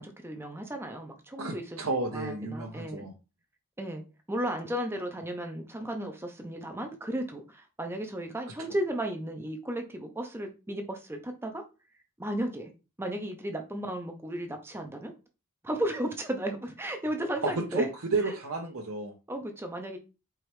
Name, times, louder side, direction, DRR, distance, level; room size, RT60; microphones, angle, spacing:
voice 1, 0.0-1.8 2.1-3.1 3.8-4.0 4.3-11.6 12.2-12.7 13.0-15.1 15.6-17.9 18.2-18.4 19.3-20.0, right 1 dB, 10° right, 5 dB, 0.5 m, -34 dB
voice 2, 1.4-3.1 17.4-19.1, right 3 dB, 70° right, -1 dB, 0.8 m, -32 dB
4.8 x 3.1 x 3.1 m, 0.29 s
head